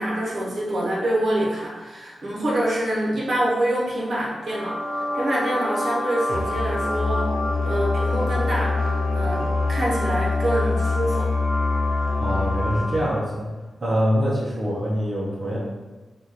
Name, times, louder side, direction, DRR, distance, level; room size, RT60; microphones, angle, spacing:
voice 1, 0.0-7.3 7.6-11.3, right 1 dB, 60° right, -6 dB, 1.0 m, -26 dB
sound 1, 4.4-13.2, equal, 5° left, 1.2 m, -29 dB
Musical instrument, 6.3-13.1, left 3 dB, 75° left, 0.3 m, -25 dB
voice 2, 12.2-13.5 13.8-15.6, equal, 40° right, -7 dB, 0.8 m, -24 dB
3.7 x 2.6 x 2.9 m, 1.2 s
wide cardioid pair, 100°, 0 cm